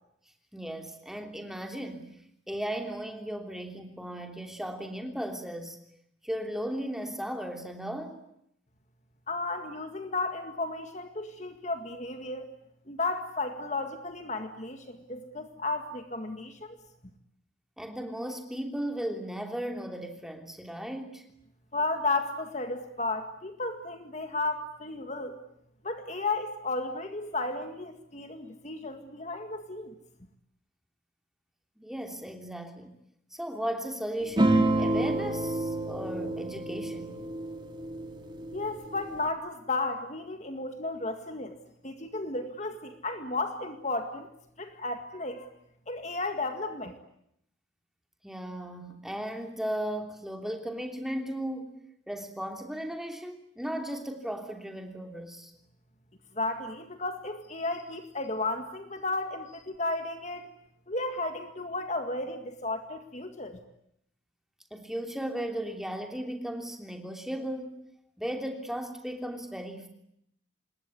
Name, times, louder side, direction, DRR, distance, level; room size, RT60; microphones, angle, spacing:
voice 1, 0.5-2.2 2.5-5.8 6.2-8.2 17.8-21.3 31.8-32.9 33.3-37.2 48.2-51.8 52.1-55.5 64.7-67.9 68.2-69.9, right 1 dB, ahead, 4 dB, 3.1 m, -36 dB
voice 2, 9.3-12.5 12.9-16.8 21.7-25.4 25.8-29.9 38.5-41.5 41.8-44.3 44.6-45.5 45.9-47.0 56.4-60.5 60.9-63.6, left 2 dB, 35° left, 7 dB, 2.0 m, -33 dB
sound 1, 34.4-39.3, right 2 dB, 25° right, 2.2 m, -29 dB
27.0 x 21.5 x 9.7 m, 0.75 s
head